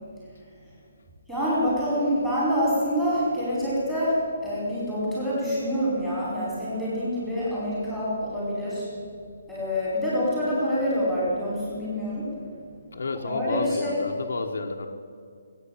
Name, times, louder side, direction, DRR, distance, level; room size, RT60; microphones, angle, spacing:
voice 1, 1.3-8.9 9.5-12.3 13.1-14.0, equal, 5° right, -9 dB, 5.0 m, -26 dB
voice 2, 12.9-14.9, left 3 dB, 70° left, 3 dB, 1.3 m, -30 dB
18.0 x 9.4 x 8.6 m, 2.2 s
hypercardioid pair, 180°, 0 cm